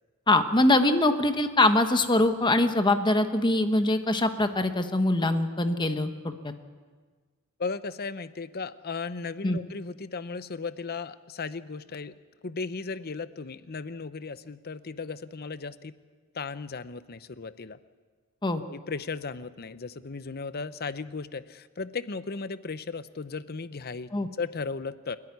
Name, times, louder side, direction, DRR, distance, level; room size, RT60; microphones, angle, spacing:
voice 1, 0.3-6.5 9.4-9.6 18.4-18.6 24.1-24.3, left 2 dB, 20° left, 8 dB, 1.0 m, -23 dB
voice 2, 7.6-12.1 12.4-15.9 16.3-17.8 18.7-25.2, left 4 dB, 45° left, 14 dB, 0.7 m, -36 dB
28.5 x 10.5 x 9.6 m, 1.5 s
head